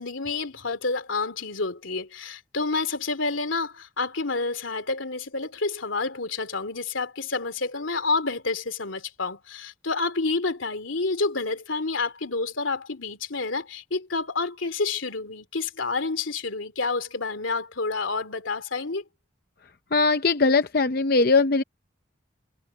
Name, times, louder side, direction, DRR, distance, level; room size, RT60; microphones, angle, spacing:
voice 1, 0.0-19.0, left 3 dB, 85° left, 2.9 m, -29 dB
voice 2, 19.9-21.6, left 4 dB, 50° left, 0.6 m, -20 dB
head